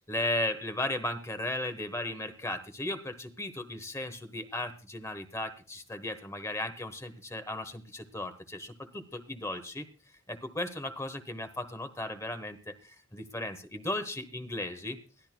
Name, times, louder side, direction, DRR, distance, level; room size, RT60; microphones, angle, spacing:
voice 1, 0.0-9.9 10.3-15.0, left 1 dB, 15° left, 9 dB, 1.1 m, -36 dB
21.5 x 14.5 x 2.2 m, 0.37 s
head